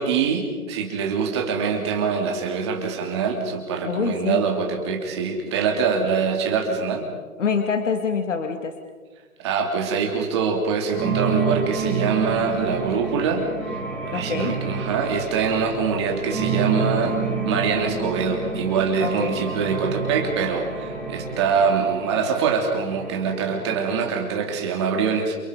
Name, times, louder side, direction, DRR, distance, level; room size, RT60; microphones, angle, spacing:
voice 1, 0.0-7.1 9.4-13.4 14.0-17.2 17.4-25.4, right 6 dB, 20° right, 2 dB, 3.0 m, -24 dB
voice 2, 3.8-4.4 7.4-8.7 14.1-14.6 19.0-19.4, left 5 dB, 55° left, 6 dB, 2.5 m, -25 dB
sound 1, 10.9-24.2, right 4 dB, 5° left, 2.6 m, -29 dB
29.0 x 28.5 x 5.2 m, 1.4 s
hypercardioid pair, 175°, 44 cm